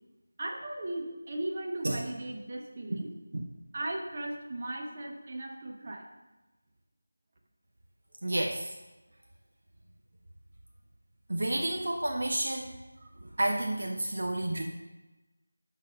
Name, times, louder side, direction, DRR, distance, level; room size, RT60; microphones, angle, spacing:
voice 1, 0.4-3.1 3.7-6.1, right 1 dB, 35° right, 0 dB, 1.1 m, -37 dB
voice 2, 8.2-8.7 11.3-12.8 13.4-14.6, right 1 dB, 55° right, 0 dB, 0.9 m, -30 dB
10.5 x 4.2 x 5.3 m, 1.1 s
figure-of-eight pair, 165°, 0 cm